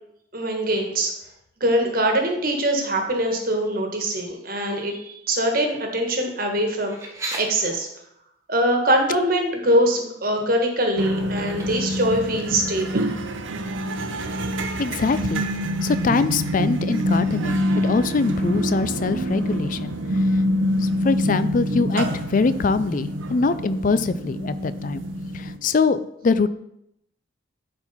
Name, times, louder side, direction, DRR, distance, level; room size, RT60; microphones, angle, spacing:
voice 1, 0.3-1.1 1.6-7.0 7.3-7.9 8.5-13.1, right 1 dB, 45° right, 3 dB, 1.4 m, -23 dB
sound 1, 6.8-7.4 9.2-9.3 9.6-10.1 11.2-12.1, right 2 dB, 15° right, 1.0 m, -35 dB
sound 2, 11.0-25.6, equal, 75° right, 0.7 m, -26 dB
voice 2, 14.8-15.5 15.8-20.4 20.8-25.0 25.3-26.5, left 4 dB, 40° left, 14 dB, 0.4 m, -23 dB
10.5 x 4.4 x 4.2 m, 0.78 s
head